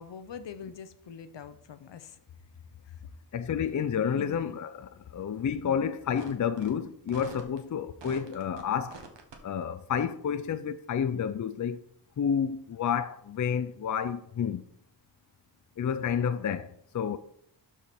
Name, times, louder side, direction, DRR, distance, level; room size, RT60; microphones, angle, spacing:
voice 1, 0.0-2.2 4.2-4.3 5.7-5.9, left 7 dB, 75° left, 0.9 m, -43 dB
voice 2, 3.3-9.0 9.4-11.8 12.2-14.6 15.8-16.7 16.9-17.2, left 7 dB, 45° left, 0.5 m, -30 dB
sound 1, 6.2-6.3 6.6-6.7 7.1-7.6 8.0-8.6 8.9-9.4, right 4 dB, 75° right, 1.6 m, -44 dB
12.0 x 5.0 x 4.3 m
wide cardioid pair, 135°, 43 cm